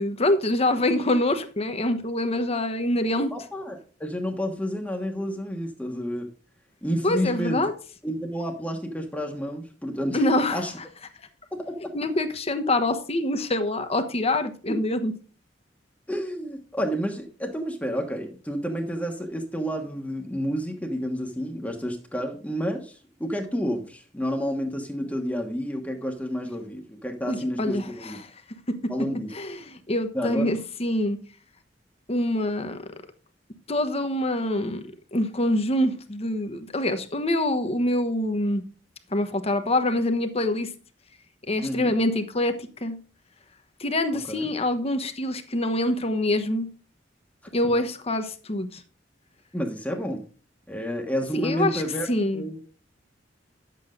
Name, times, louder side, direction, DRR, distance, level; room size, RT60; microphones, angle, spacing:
voice 1, 0.0-3.3 7.0-7.7 10.1-10.6 11.9-15.1 27.3-28.1 28.7-28.9 29.3-31.2 32.1-32.8 33.7-34.8 35.1-38.6 39.1-40.7 41.5-42.5 42.8-43.0 43.8-46.7 47.5-48.8 51.3-51.8 52.1-52.4, left 1 dB, 35° left, 1.1 m, -25 dB
voice 2, 3.3-6.3 6.8-7.6 8.0-10.2 10.5-10.7 11.5-11.9 14.7-14.8 16.1-28.2 28.9-29.3 30.1-30.6 41.6-41.9 44.3-44.5 49.5-50.2 50.7-52.1 52.3-52.6, equal, 10° left, 1.3 m, -30 dB
10.5 x 7.7 x 3.8 m
head